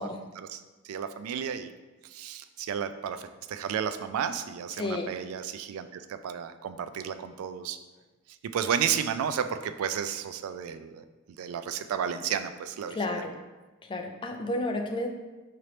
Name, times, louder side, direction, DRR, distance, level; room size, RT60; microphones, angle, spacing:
voice 1, 0.4-1.7 2.1-7.8 8.5-11.0 11.4-13.2, right 8 dB, 85° right, 11 dB, 0.3 m, -32 dB
voice 2, 4.8-5.1 12.9-13.4 13.9-15.1, left 2 dB, 25° left, 3 dB, 0.4 m, -31 dB
5.0 x 2.9 x 3.2 m, 1.2 s
head